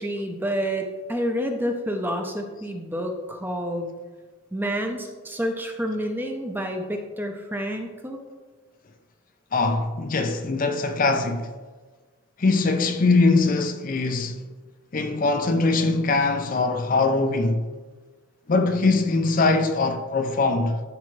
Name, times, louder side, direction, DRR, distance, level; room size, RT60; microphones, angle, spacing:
voice 1, 0.0-3.9 4.5-8.2, equal, 10° right, 0.7 m, -29 dB
voice 2, 9.5-11.5 12.4-14.5 14.9-17.7 18.5-20.8, left 3 dB, 40° left, 0.5 m, -22 dB
11.5 x 4.8 x 3.2 m
head